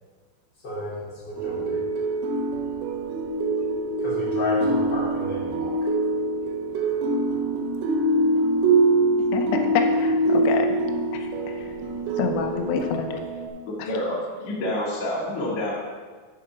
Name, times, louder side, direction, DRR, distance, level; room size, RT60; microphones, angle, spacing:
voice 1, 0.6-1.8 4.0-5.7, left 1 dB, 25° left, -8 dB, 3.1 m, -32 dB
sound 1, 1.4-13.5, right 2 dB, 85° right, 3.9 m, -24 dB
voice 2, 9.3-10.8 11.1-11.7 12.2-13.2 13.8-13.9, left 6 dB, 90° left, 5 dB, 3.5 m, -28 dB
voice 3, 13.7-15.7, left 1 dB, 55° left, -5 dB, 1.2 m, -28 dB
11.0 x 4.8 x 5.7 m, 1.4 s
omnidirectional pair, 5.8 m